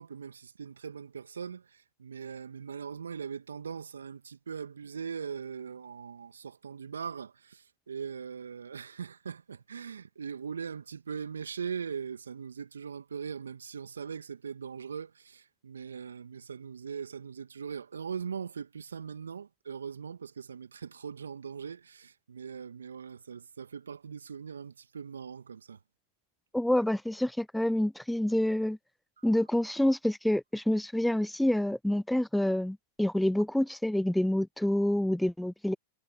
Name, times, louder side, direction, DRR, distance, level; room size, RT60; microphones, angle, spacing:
voice 1, 0.0-25.8 29.2-29.3, right 6 dB, 80° right, 2.5 m, -40 dB
voice 2, 26.5-28.8 29.2-35.7, left 1 dB, 5° left, 0.5 m, -27 dB
figure-of-eight pair, 95°, 0 cm